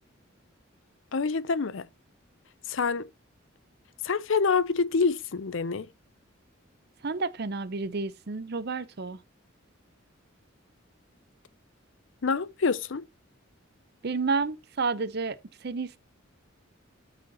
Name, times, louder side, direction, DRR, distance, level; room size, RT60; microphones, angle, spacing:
voice 1, 1.1-1.9 2.7-3.1 4.0-5.9 12.2-13.0, left 5 dB, 65° left, 0.6 m, -26 dB
voice 2, 7.0-9.2 14.0-15.4 15.6-16.0, right 4 dB, 50° right, 0.7 m, -30 dB
12.5 x 4.9 x 2.9 m
head